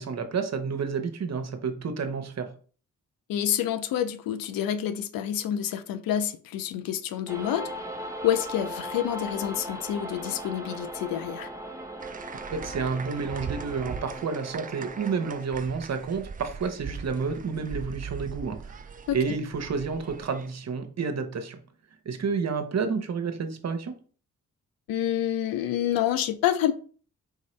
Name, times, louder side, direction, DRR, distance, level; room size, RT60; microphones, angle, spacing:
voice 1, 0.0-2.5 12.5-18.8 19.1-21.6 22.0-23.9, right 5 dB, 50° right, 0.8 m, -30 dB
voice 2, 3.3-7.7 8.2-11.5 19.1-19.4 24.9-26.7, left 11 dB, 80° left, 0.5 m, -28 dB
sound 1, 7.3-15.4, equal, 10° right, 0.8 m, -38 dB
sound 2, 12.0-20.5, right 6 dB, 25° right, 0.4 m, -41 dB
4.7 x 2.7 x 3.1 m
supercardioid pair, 45°, 34 cm